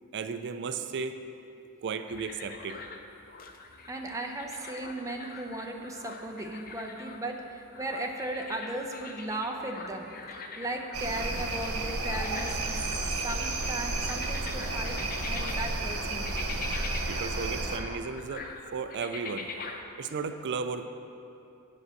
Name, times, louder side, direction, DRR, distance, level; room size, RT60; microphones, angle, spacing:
voice 1, 0.1-1.2 1.8-2.8 17.1-19.5 20.0-20.9, right 5 dB, 50° right, 9 dB, 0.4 m, -34 dB
sound 1, 2.1-19.8, left 4 dB, 40° left, 0.6 m, -44 dB
voice 2, 3.9-12.9 13.2-15.0 15.3-16.5, right 1 dB, 15° right, 2 dB, 0.7 m, -36 dB
sound 2, 10.9-17.8, right 2 dB, 75° right, 0.8 m, -32 dB
8.3 x 5.3 x 7.7 m, 2.7 s
head